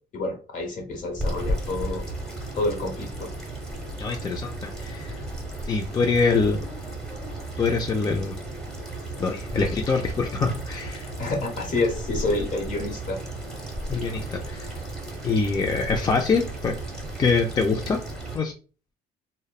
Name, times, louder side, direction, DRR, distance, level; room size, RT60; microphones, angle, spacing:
voice 1, 0.1-2.0 2.5-3.3 11.2-13.2, left 2 dB, 50° left, 1 dB, 1.0 m, -28 dB
sound 1, 0.9-18.4, right 1 dB, 5° left, 0.9 m, -34 dB
voice 2, 4.0-5.2 5.6-6.7 7.6-8.4 9.2-11.1 13.9-14.8 15.2-16.7 17.2-18.0 18.3-18.5, left 4 dB, 25° left, 3 dB, 0.3 m, -24 dB
2.9 x 2.0 x 2.3 m, 0.36 s
cardioid pair, 110°, 17 cm